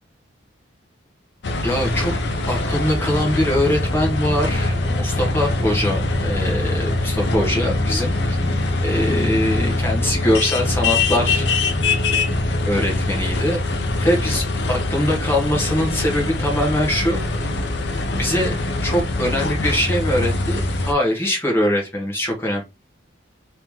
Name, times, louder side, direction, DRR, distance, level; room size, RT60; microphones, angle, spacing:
sound 1, 1.4-20.9, left 2 dB, 60° left, 0.6 m, -23 dB
voice 1, 1.6-2.1 2.5-8.4 8.8-11.5 12.6-13.6 14.0-17.2 18.1-18.5 18.8-22.6, left 1 dB, 10° left, -1 dB, 1.0 m, -22 dB
3.1 x 2.9 x 3.5 m, 0.24 s
head